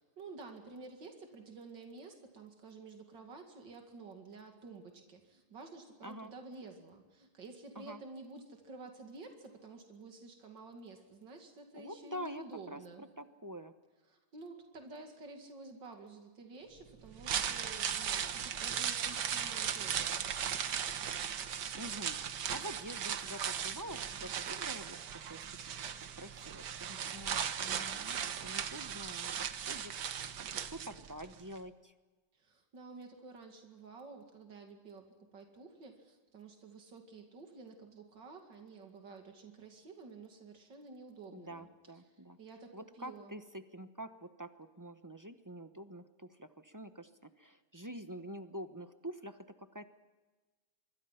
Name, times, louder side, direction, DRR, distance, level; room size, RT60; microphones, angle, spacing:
voice 1, 0.2-13.0 14.1-20.1 32.3-41.7 42.1-43.4, right 3 dB, 90° right, 4 dB, 2.9 m, -51 dB
voice 2, 6.0-6.3 7.8-8.0 11.8-13.7 21.7-25.9 26.2-29.3 29.7-29.9 30.2-31.9 41.3-42.4 42.7-49.8, right 1 dB, 15° right, 9 dB, 0.7 m, -47 dB
sound 1, 17.0-31.3 31.6-31.7, right 8 dB, 70° right, 1.7 m, -37 dB
25.5 x 23.5 x 5.8 m, 1.3 s
omnidirectional pair, 1.9 m